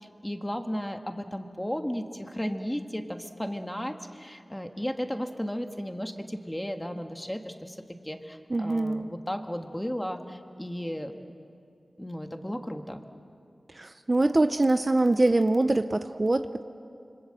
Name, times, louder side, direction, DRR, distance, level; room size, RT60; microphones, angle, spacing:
voice 1, 0.0-11.2 12.0-13.0, equal, 10° left, 6 dB, 1.6 m, -34 dB
voice 2, 8.5-9.1 13.7-16.6, right 2 dB, 35° right, 9 dB, 0.7 m, -24 dB
27.0 x 25.0 x 7.7 m, 2.5 s
wide cardioid pair, 85°, 0 cm